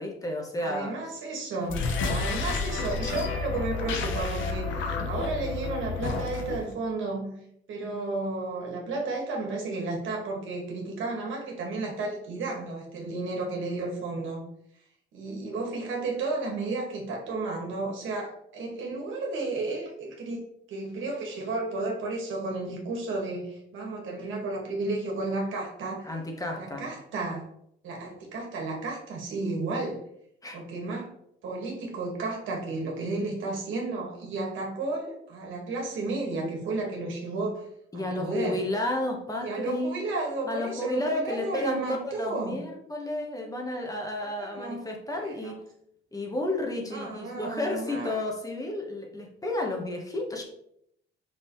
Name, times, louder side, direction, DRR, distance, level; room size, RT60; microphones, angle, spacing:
voice 1, 0.0-1.0 26.0-26.8 30.4-30.6 37.9-40.0 40.5-45.7 46.1-50.4, left 1 dB, 15° left, 1 dB, 1.4 m, -32 dB
voice 2, 0.6-1.9 2.1-7.4 7.7-14.4 15.1-20.4 20.7-26.1 26.6-27.5 27.8-30.0 30.5-31.1 31.4-37.7 37.9-38.6 39.4-42.6 44.2-44.9 45.1-45.5 46.9-48.2, right 3 dB, 75° right, 0 dB, 1.9 m, -33 dB
sound 1, 1.6-6.7, left 4 dB, 75° left, 1.0 m, -30 dB
5.7 x 5.2 x 3.2 m, 0.73 s
cardioid pair, 90°, 20 cm